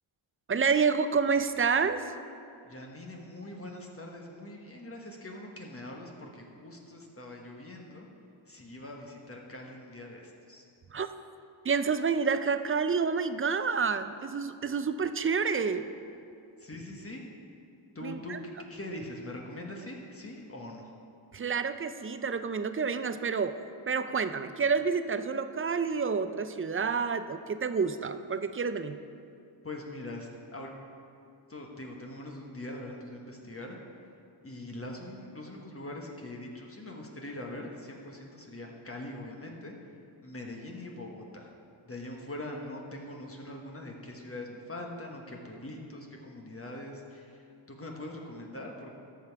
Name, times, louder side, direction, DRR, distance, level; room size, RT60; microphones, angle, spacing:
voice 1, 0.5-2.0 10.9-11.1 11.6-15.9 18.0-18.4 21.3-23.6 23.9-29.0, right 5 dB, 30° right, 11 dB, 0.4 m, -29 dB
voice 2, 2.6-8.1 8.5-10.6 16.6-17.2 17.9-20.9 29.6-30.7 31.5-33.8 34.4-39.7 40.2-41.5 41.8-49.0, left 1 dB, 25° left, 0 dB, 1.3 m, -42 dB
14.0 x 5.5 x 4.6 m, 2.5 s
cardioid pair, 70°, 49 cm